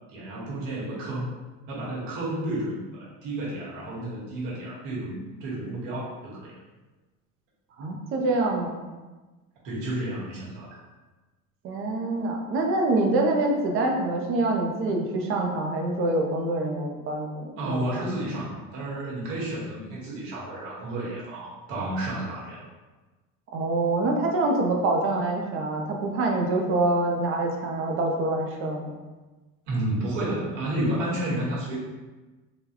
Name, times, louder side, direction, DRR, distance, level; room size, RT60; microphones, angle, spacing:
voice 1, 0.1-1.3 1.7-6.6 9.6-10.8 17.6-22.6 29.7-31.8, right 1 dB, 75° right, -6 dB, 1.4 m, -31 dB
voice 2, 7.8-8.8 11.6-17.8 23.5-28.9, right 2 dB, 35° right, 1 dB, 0.5 m, -25 dB
3.9 x 2.2 x 2.8 m, 1.2 s
cardioid pair, 150°, 36 cm